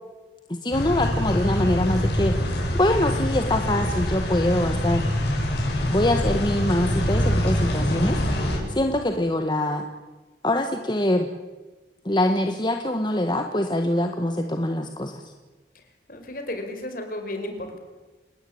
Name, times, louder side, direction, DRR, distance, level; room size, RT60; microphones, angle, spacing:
voice 1, 0.5-5.0 5.9-8.2 8.7-9.8 10.4-11.3 12.0-15.3, left 1 dB, 25° left, 5 dB, 1.5 m, -24 dB
sound 1, 0.7-8.6, left 1 dB, 75° left, 7.9 m, -25 dB
voice 2, 15.7-17.8, left 1 dB, 50° left, 6 dB, 5.1 m, -34 dB
28.5 x 19.0 x 8.7 m, 1.3 s
head